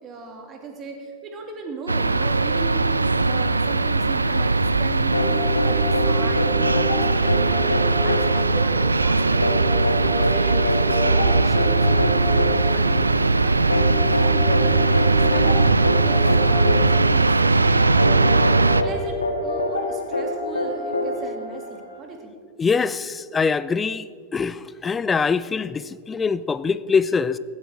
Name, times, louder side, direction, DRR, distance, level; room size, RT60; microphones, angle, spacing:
voice 1, 0.0-4.5 4.8-9.6 10.0-12.2 12.7-18.4 18.8-22.3, right 4 dB, 30° right, 2.4 m, -37 dB
sound 1, 1.9-18.8, right 3 dB, 80° right, 0.4 m, -19 dB
sound 2, 5.1-22.0, left 2 dB, 75° left, 1.6 m, -26 dB
voice 2, 22.6-24.1 24.3-27.4, left 5 dB, 15° left, 0.4 m, -23 dB
15.5 x 11.5 x 4.8 m
figure-of-eight pair, 90°, 0 cm